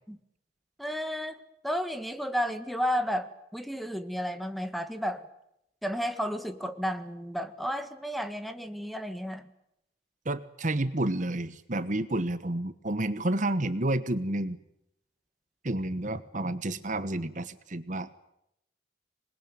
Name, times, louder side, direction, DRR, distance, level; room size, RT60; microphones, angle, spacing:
voice 1, 0.8-1.4 1.6-5.2 5.8-9.5, equal, ahead, 9 dB, 1.7 m, -32 dB
voice 2, 10.2-14.6 15.6-18.3, right 1 dB, 45° right, 13 dB, 1.2 m, -30 dB
27.0 x 21.0 x 9.2 m, 0.80 s
head